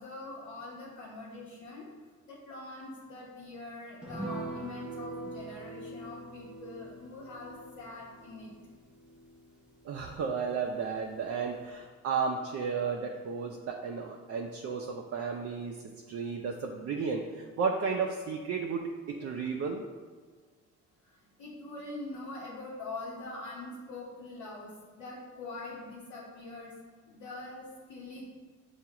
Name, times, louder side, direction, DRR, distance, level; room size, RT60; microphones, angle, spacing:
voice 1, 0.0-1.9 2.3-8.5 21.4-26.7 27.1-28.2, left 2 dB, 75° left, -7 dB, 1.0 m, -43 dB
sound 1, 4.0-10.8 11.1-11.2 11.5-11.7, right 2 dB, 5° right, 0.6 m, -44 dB
voice 2, 9.8-19.8, right 5 dB, 50° right, 1 dB, 0.4 m, -33 dB
6.6 x 2.4 x 2.9 m, 1.5 s
cardioid pair, 90°, 30 cm